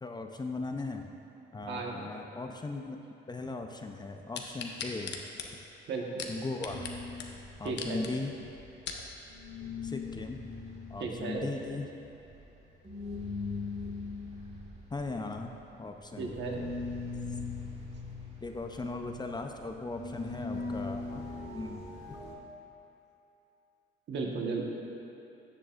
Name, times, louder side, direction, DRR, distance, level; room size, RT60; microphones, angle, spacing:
voice 1, 0.0-1.1 1.5-3.0 3.3-5.2 6.3-7.0 7.6-8.3 9.8-10.4 10.9-11.9 14.9-15.5 15.8-16.3 18.4-21.3 21.5-21.8, left 3 dB, 20° left, 4 dB, 0.5 m, -38 dB
voice 2, 1.7-2.1 5.9-6.3 7.6-8.1 11.0-11.5 16.2-16.6 24.1-24.6, right 4 dB, 65° right, 0 dB, 1.3 m, -35 dB
sound 1, 4.3-6.9 7.2-7.3 7.7-8.1 8.6-9.1 9.7-9.8, left 6 dB, 60° left, 0.9 m, -39 dB
sound 2, 6.6-9.0 9.3-22.3, left 3 dB, 30° right, 1.8 m, -41 dB
13.5 x 7.5 x 2.5 m, 2.9 s
cardioid pair, 90°, 20 cm